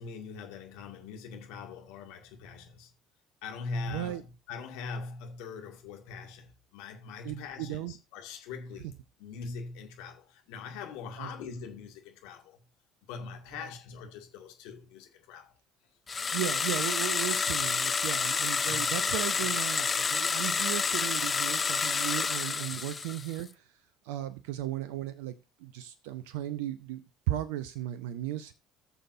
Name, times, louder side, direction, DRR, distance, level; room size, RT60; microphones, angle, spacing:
voice 1, 0.0-2.9 3.4-8.9 9.2-12.6 13.1-15.5 18.7-19.0 24.2-24.3, left 4 dB, 65° left, 2.3 m, -42 dB
voice 2, 3.9-4.2 7.2-7.9 11.2-11.3 13.5-13.7 16.3-23.5 24.0-25.3 25.6-28.5, right 13 dB, 70° right, 0.6 m, -36 dB
sound 1, 16.1-23.4, left 5 dB, 30° left, 0.4 m, -29 dB
15.0 x 7.0 x 2.7 m
hypercardioid pair, 60°, 0 cm